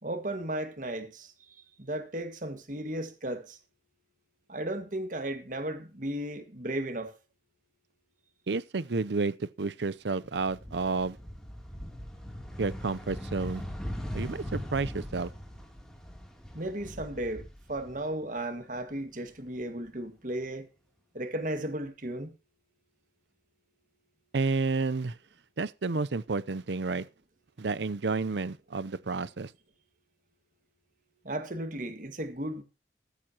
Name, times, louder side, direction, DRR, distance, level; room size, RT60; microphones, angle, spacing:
voice 1, 0.0-1.5 1.8-3.6 4.5-7.2 16.5-20.7 21.1-22.3 31.2-32.6, right 1 dB, 45° right, 1.9 m, -35 dB
voice 2, 8.5-11.2 12.6-13.6 14.1-15.3 24.3-25.1 25.6-27.1 27.6-29.5, right 4 dB, 75° right, 0.6 m, -30 dB
sound 1, 10.2-18.4 18.7-19.9, equal, 5° left, 2.9 m, -40 dB
15.0 x 13.5 x 2.9 m
head